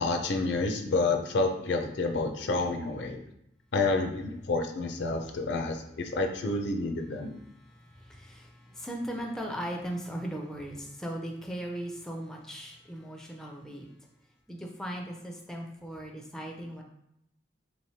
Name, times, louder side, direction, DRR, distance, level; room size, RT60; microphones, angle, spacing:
voice 1, 0.0-3.2 3.7-7.3, left 3 dB, 70° left, 4 dB, 0.4 m, -29 dB
voice 2, 7.5-13.9 14.5-16.8, right 1 dB, 5° left, 0 dB, 0.4 m, -38 dB
3.8 x 3.1 x 2.7 m, 0.78 s
head